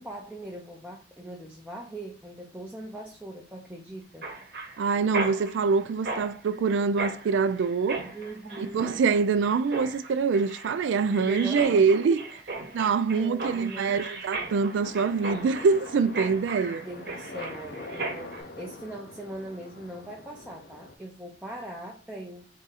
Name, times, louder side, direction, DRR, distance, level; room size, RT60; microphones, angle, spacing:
voice 1, 0.0-4.3 8.1-9.0 11.1-12.2 13.2-14.0 16.6-22.5, right 1 dB, 5° right, 0.5 m, -40 dB
Mechanisms, 4.2-18.4, right 3 dB, 55° right, 1.0 m, -37 dB
voice 2, 4.8-8.0 8.6-12.2 12.7-16.8, right 5 dB, 85° right, 0.3 m, -24 dB
sound 1, 14.8-21.0, left 2 dB, 55° left, 0.6 m, -44 dB
3.6 x 2.7 x 3.9 m
head